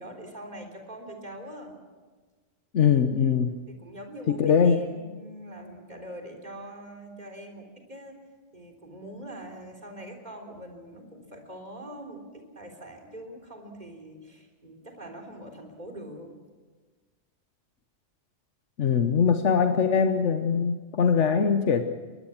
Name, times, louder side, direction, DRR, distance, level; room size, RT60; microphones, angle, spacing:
voice 1, 0.0-1.7 3.7-8.2 8.5-16.3, right 1 dB, 35° right, 3 dB, 4.0 m, -43 dB
voice 2, 2.7-3.6 4.3-4.8 18.8-21.9, left 6 dB, 75° left, 7 dB, 1.3 m, -22 dB
22.0 x 21.0 x 7.2 m, 1.4 s
omnidirectional pair, 1.2 m